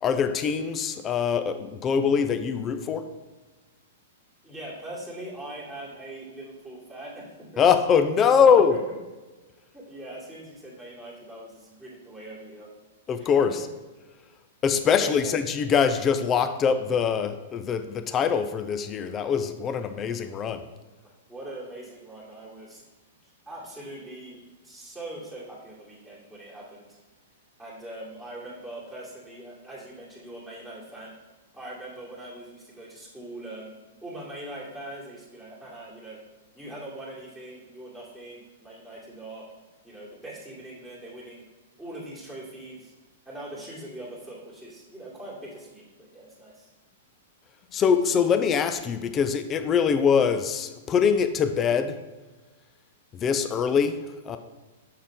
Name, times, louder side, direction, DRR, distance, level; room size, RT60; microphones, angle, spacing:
voice 1, 0.0-3.1 7.6-8.8 13.1-13.6 14.6-20.6 47.7-52.0 53.1-54.0 54.2-54.4, left 6 dB, 25° left, 10 dB, 0.5 m, -23 dB
voice 2, 4.4-7.6 8.4-8.8 9.7-12.7 13.4-13.6 15.0-15.3 21.3-22.8 23.2-27.0 27.6-31.2 31.5-33.7 34.0-36.2 36.5-39.5 39.8-41.5 41.8-42.9 43.3-46.7, right 1 dB, 5° left, -9 dB, 2.1 m, -41 dB
6.3 x 5.7 x 3.6 m, 1.2 s
hypercardioid pair, 135°, 0 cm